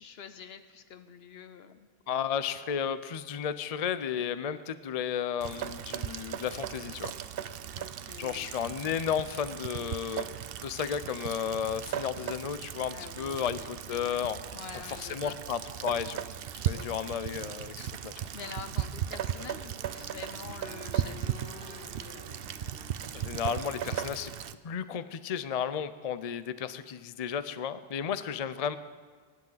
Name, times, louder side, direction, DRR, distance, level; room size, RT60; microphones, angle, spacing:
voice 1, 0.0-1.9 7.7-8.5 12.9-14.2 14.5-15.4 16.7-16.9 18.3-23.1 28.2-28.4, left 7 dB, 80° left, 9 dB, 1.0 m, -47 dB
voice 2, 2.1-7.1 8.2-14.4 14.9-16.2 16.6-18.2 23.1-24.3 24.6-28.8, left 8 dB, 45° left, 13 dB, 0.5 m, -33 dB
Rain, 5.4-24.6, right 10 dB, 70° right, 0.8 m, -37 dB
sound 1, 10.4-24.0, equal, 5° right, 4.2 m, -54 dB
23.5 x 10.5 x 3.9 m, 1.6 s
omnidirectional pair, 1.1 m